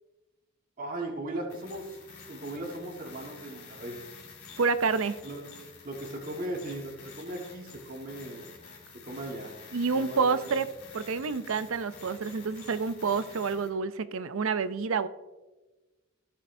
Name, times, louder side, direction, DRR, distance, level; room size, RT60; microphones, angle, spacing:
voice 1, 0.8-4.0 5.2-5.5 5.8-8.5 9.0-9.5 9.9-10.5, right 1 dB, 40° right, -1 dB, 1.5 m, -38 dB
sound 1, 1.5-13.7, left 5 dB, 90° left, 2.5 m, -49 dB
voice 2, 4.6-5.1 9.7-10.7 10.9-15.1, right 5 dB, 65° right, 13 dB, 0.5 m, -28 dB
16.0 x 6.8 x 2.7 m, 1.2 s
head